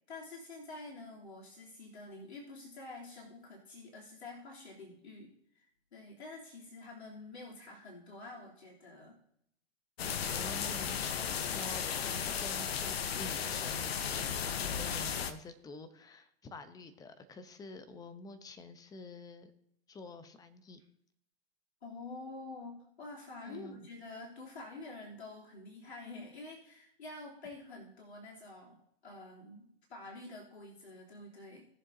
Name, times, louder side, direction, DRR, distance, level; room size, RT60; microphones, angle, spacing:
voice 1, 0.1-5.7 5.9-9.2 21.8-28.8 29.0-31.7, left 2 dB, 85° left, -3 dB, 3.3 m, -48 dB
sound 1, 10.0-15.3, left 7 dB, 70° left, 1.1 m, -35 dB
voice 2, 10.3-19.5 19.9-20.8 23.5-23.9, left 2 dB, 10° left, 10 dB, 0.8 m, -49 dB
19.5 x 7.2 x 2.8 m, 0.71 s
hypercardioid pair, 130°, 32 cm